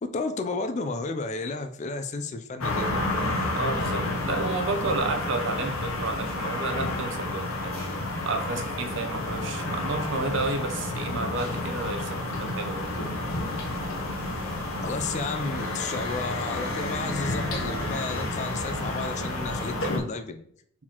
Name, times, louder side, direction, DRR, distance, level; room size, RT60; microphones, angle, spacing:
voice 1, 0.0-2.9 14.8-20.5, left 3 dB, 35° left, 8 dB, 0.4 m, -32 dB
sound 1, 2.6-20.0, left 2 dB, 85° left, 0.9 m, -30 dB
voice 2, 3.5-12.9, right 3 dB, 60° right, 5 dB, 0.7 m, -31 dB
sound 2, 15.3-17.9, right 1 dB, 45° right, 1.1 m, -40 dB
4.3 x 4.0 x 2.9 m, 0.65 s
head